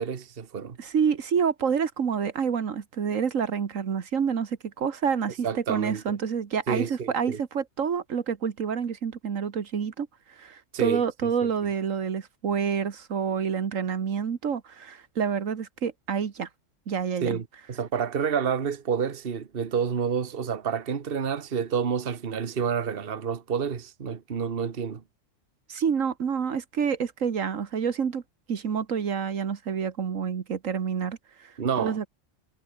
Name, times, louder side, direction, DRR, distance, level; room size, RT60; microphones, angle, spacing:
voice 1, 0.0-0.8 5.4-6.2 6.7-7.4 10.7-11.5 17.2-25.0 31.6-32.0, right 7 dB, 45° right, 1.4 m, -29 dB
voice 2, 0.8-10.1 10.4-16.5 16.9-17.4 25.7-28.2 28.5-32.1, right 7 dB, 80° right, 1.8 m, -28 dB
omnidirectional pair, 1.3 m